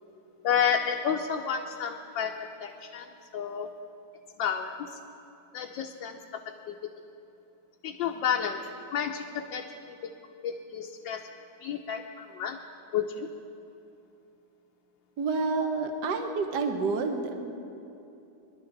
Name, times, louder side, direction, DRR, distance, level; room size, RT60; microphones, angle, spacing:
voice 1, 0.4-3.1 3.3-3.7 4.4-5.0 5.5-6.4 6.7-6.8 7.8-10.1 10.4-11.2 11.6-12.6 12.9-13.3, left 7 dB, 75° left, 2 dB, 1.4 m, -31 dB
voice 2, 15.2-17.5, right 4 dB, 65° right, 5 dB, 1.5 m, -29 dB
26.0 x 11.5 x 3.9 m, 2.8 s
omnidirectional pair, 2.1 m